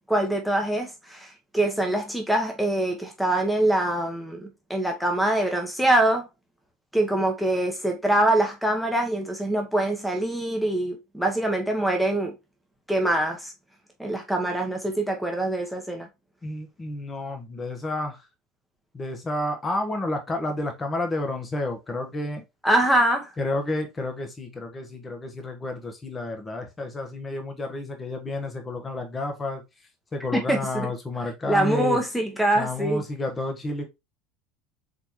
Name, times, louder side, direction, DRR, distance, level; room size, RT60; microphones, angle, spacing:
voice 1, 0.1-6.3 6.9-12.3 12.9-13.5 14.0-16.1 22.6-23.3 30.3-30.9 31.5-33.0, right 1 dB, ahead, 1.0 m, -24 dB
voice 2, 16.4-18.3 18.9-22.4 23.4-29.6 30.1-32.0 32.5-33.9, left 2 dB, 25° left, 1.2 m, -30 dB
4.0 x 3.5 x 3.0 m
hypercardioid pair, 85°, 0 cm